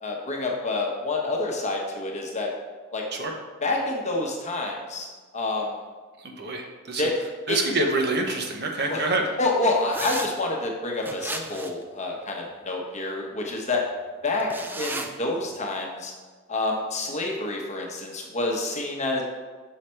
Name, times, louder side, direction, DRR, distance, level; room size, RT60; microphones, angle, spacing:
voice 1, 0.0-2.5 2.9-3.0 3.6-5.1 5.3-5.7 7.0-7.1 7.5-7.6 8.9-9.0 9.4-13.8 14.2-16.1 16.5-19.2, left 2 dB, 30° left, 0 dB, 1.0 m, -28 dB
voice 2, 6.2-7.1 7.5-9.2, right 2 dB, 50° right, 3 dB, 0.8 m, -26 dB
sound 1, 9.9-10.3 11.0-11.8 14.4-15.1, right 2 dB, 10° right, 0.4 m, -33 dB
6.6 x 4.9 x 4.4 m, 1.4 s
head